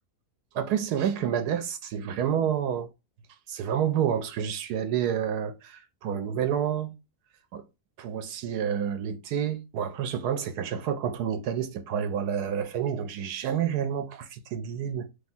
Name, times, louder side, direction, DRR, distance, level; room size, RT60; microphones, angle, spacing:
voice 1, 0.5-2.9 3.5-6.9 7.5-7.6 8.0-15.1, right 8 dB, 85° right, 1.1 m, -29 dB
3.4 x 2.9 x 4.1 m
omnidirectional pair, 1.7 m